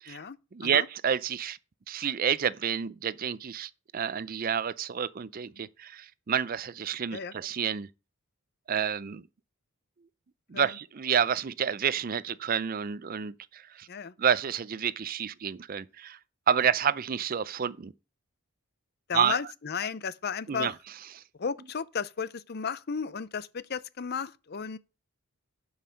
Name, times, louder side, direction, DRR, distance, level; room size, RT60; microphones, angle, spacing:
voice 1, 0.5-1.6 1.9-7.9 8.7-9.2 10.5-13.9 14.2-16.2 16.5-17.9 19.1-19.4 20.5-20.7 21.1-21.2, right 8 dB, 40° right, 0.4 m, -29 dB
voice 2, 19.1-20.7 21.4-24.8, left 6 dB, 50° left, 0.6 m, -34 dB
11.0 x 5.6 x 6.4 m
head